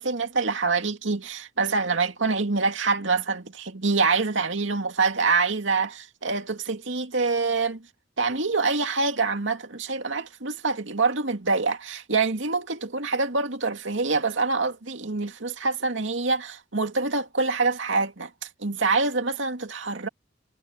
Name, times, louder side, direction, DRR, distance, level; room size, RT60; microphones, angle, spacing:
voice 1, 0.0-7.9 8.2-20.1, right 4 dB, 80° right, 2.4 m, -25 dB
head